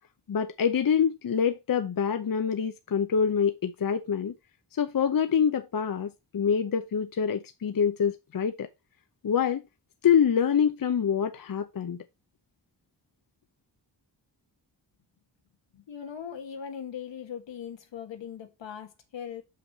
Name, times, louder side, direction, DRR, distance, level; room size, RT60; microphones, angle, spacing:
voice 1, 0.3-4.3 4.7-8.7 9.2-9.6 10.0-12.0, left 7 dB, 50° left, 0.8 m, -26 dB
voice 2, 15.7-19.4, left 8 dB, 80° left, 1.9 m, -40 dB
6.4 x 5.9 x 4.1 m
cardioid pair, 65°, 44 cm